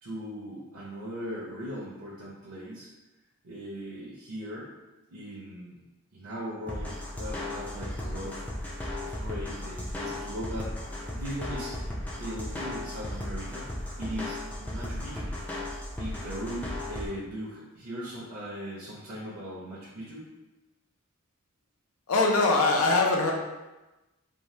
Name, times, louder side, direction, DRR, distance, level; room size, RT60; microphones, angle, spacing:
voice 1, 0.0-2.9 3.4-4.7 5.1-5.8 6.1-10.7 11.1-11.8 12.2-15.3 16.0-20.3, equal, 60° right, -7 dB, 0.6 m, -39 dB
sound 1, 6.7-17.1, left 1 dB, 5° left, 0.3 m, -36 dB
voice 2, 22.1-23.3, left 3 dB, 85° left, 1 dB, 0.5 m, -22 dB
2.7 x 2.2 x 3.1 m, 1.1 s
head